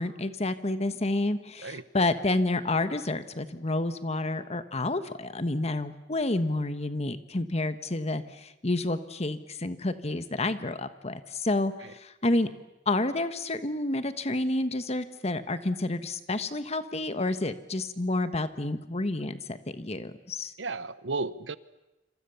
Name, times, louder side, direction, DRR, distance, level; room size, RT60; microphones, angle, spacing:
voice 1, 0.0-12.5 12.9-20.5, left 2 dB, 35° left, 11 dB, 1.4 m, -29 dB
voice 2, 20.6-21.6, right 3 dB, 90° right, 16 dB, 1.0 m, -33 dB
27.0 x 26.5 x 7.1 m, 0.98 s
head